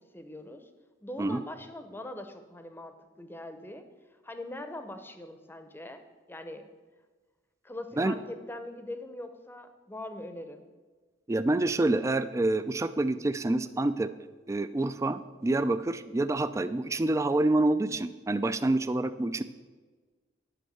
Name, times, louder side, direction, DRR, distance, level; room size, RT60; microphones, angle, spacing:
voice 1, 0.1-0.7 1.0-3.8 4.2-6.0 6.3-6.7 7.6-10.7, left 1 dB, 10° left, 8 dB, 0.7 m, -42 dB
voice 2, 11.3-14.1 14.5-19.4, right 2 dB, 15° right, 12 dB, 0.3 m, -27 dB
9.2 x 5.5 x 6.8 m, 1.4 s
head